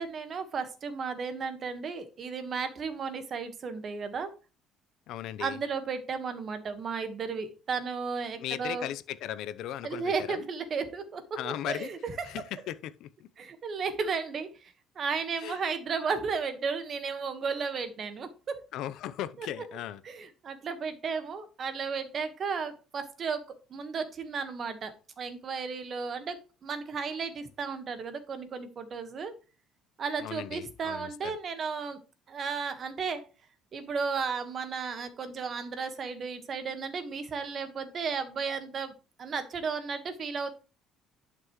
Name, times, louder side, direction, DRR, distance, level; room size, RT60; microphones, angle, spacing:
voice 1, 0.0-4.3 5.4-8.9 9.8-12.4 13.4-18.6 19.4-19.5 20.0-29.3 30.0-32.0 32.3-33.2 33.7-38.9 39.2-40.5, right 5 dB, 40° right, 1.4 m, -34 dB
voice 2, 5.1-5.6 8.4-10.4 11.4-11.9 12.2-13.3 15.4-15.6 18.7-20.0 30.2-31.3, left 12 dB, 70° left, 0.7 m, -37 dB
11.0 x 6.0 x 3.1 m
cardioid pair, 135°, 0 cm